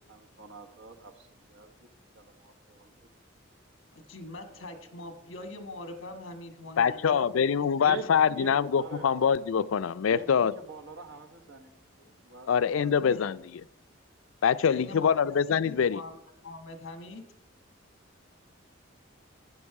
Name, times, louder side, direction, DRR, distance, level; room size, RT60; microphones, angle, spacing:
voice 1, 0.1-1.9 2.1-2.9 5.0-5.1 7.8-8.1 8.4-9.1 10.1-11.8 12.2-12.5 12.8-13.0, right 3 dB, 65° right, 4 dB, 1.2 m, -44 dB
voice 2, 3.9-8.4 12.8-13.2 14.6-17.2, left 1 dB, 70° left, 6 dB, 1.4 m, -43 dB
voice 3, 6.8-10.5 12.5-13.4 14.4-16.0, left 7 dB, 85° left, 16 dB, 0.4 m, -24 dB
12.5 x 8.4 x 4.7 m, 0.85 s
head